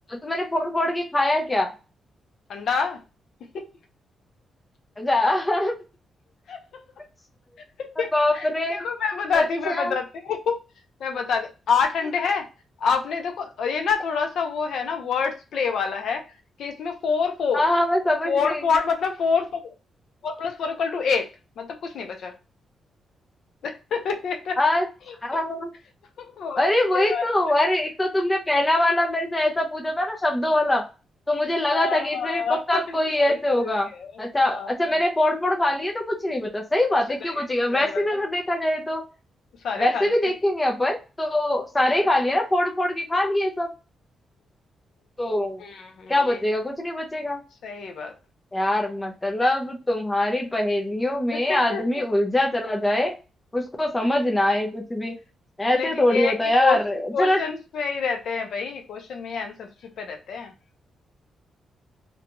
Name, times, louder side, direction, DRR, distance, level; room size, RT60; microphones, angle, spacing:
voice 1, 0.1-1.7 5.0-5.7 8.1-8.8 9.3-10.0 17.5-18.6 24.6-24.9 25.2-25.7 26.6-30.8 31.3-33.9 34.2-39.0 39.8-43.7 45.2-45.6 46.1-47.4 48.5-53.1 53.5-55.1 55.6-57.4, left 1 dB, 15° left, 1 dB, 0.5 m, -23 dB
voice 2, 2.5-3.0 3.5-3.7 6.5-6.6 8.0-8.1 8.3-10.6 11.0-12.5 12.8-16.2 16.6-17.6 18.3-19.7 20.2-21.3 21.6-22.3 23.6-24.6 26.2-26.7 26.9-27.2 31.7-32.6 33.3-33.7 34.0-34.2 34.5-34.7 36.9-37.0 37.3-38.0 39.6-40.3 45.6-46.4 47.6-48.1 51.3-51.8 55.7-56.3 56.6-56.8 57.1-59.7 60.0-60.5, left 5 dB, 65° left, 4 dB, 0.5 m, -27 dB
2.6 x 2.2 x 2.8 m, 0.31 s
wide cardioid pair, 160°, 0 cm